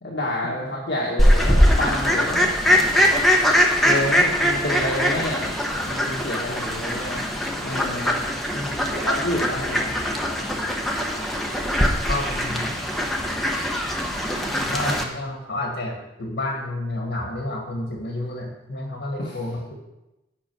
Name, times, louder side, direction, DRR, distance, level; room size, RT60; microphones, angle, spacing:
voice 1, 0.0-2.5 3.8-7.2 7.6-8.2 9.0-10.0 19.2-19.4, left 1 dB, 70° left, -4 dB, 1.4 m, -29 dB
Fowl, 1.2-15.0, equal, ahead, 0.9 m, -22 dB
voice 2, 12.1-12.7 14.6-19.7, left 2 dB, 85° left, 0 dB, 1.5 m, -30 dB
8.4 x 5.5 x 6.0 m, 0.97 s
head